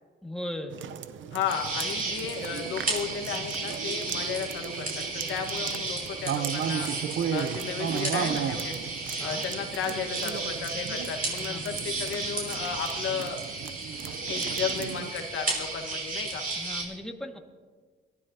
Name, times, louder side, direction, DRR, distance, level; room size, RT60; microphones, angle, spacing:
voice 1, 0.2-0.8 9.1-9.4 11.4-11.8 16.6-17.4, left 1 dB, ahead, 2 dB, 1.9 m, -38 dB
sound 1, 0.7-15.1, right 8 dB, 70° right, 0.7 m, -35 dB
voice 2, 1.3-6.9 7.3-8.8 9.2-13.4 14.3-16.4, left 7 dB, 85° left, 5 dB, 1.5 m, -34 dB
sound 2, 1.5-16.8, right 3 dB, 45° right, 5.7 m, -34 dB
23.0 x 15.5 x 2.8 m, 1.5 s
cardioid pair, 90°, 20 cm